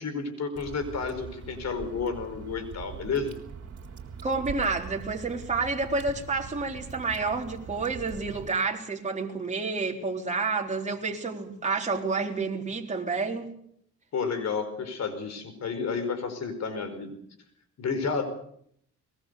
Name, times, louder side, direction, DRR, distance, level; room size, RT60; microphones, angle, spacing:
voice 1, 0.0-3.3 14.1-17.1 17.8-18.3, left 5 dB, 60° left, 10 dB, 4.9 m, -31 dB
Water / Drip, 0.6-8.5, right 6 dB, 50° right, 3.7 m, -42 dB
voice 2, 4.2-13.5, right 4 dB, 25° right, 0 dB, 4.0 m, -29 dB
22.5 x 21.0 x 6.9 m, 0.70 s
cardioid pair, 90°, 30 cm